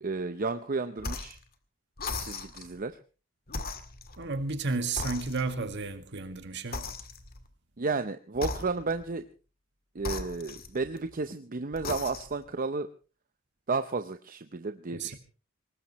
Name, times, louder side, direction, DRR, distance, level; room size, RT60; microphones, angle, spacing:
voice 1, 0.0-1.4 2.2-3.0 7.8-9.2 9.9-12.9 13.7-15.1, right 3 dB, 45° right, 0.7 m, -32 dB
sound 1, 1.0-1.4 2.0-2.7 3.5-4.6 5.0-5.8 6.7-7.5 8.3-9.1 10.0-11.1 11.7-12.5, left 3 dB, 50° left, 1.9 m, -38 dB
voice 2, 4.2-6.9 14.9-15.2, right 3 dB, 60° right, 1.9 m, -32 dB
22.0 x 19.5 x 3.1 m
head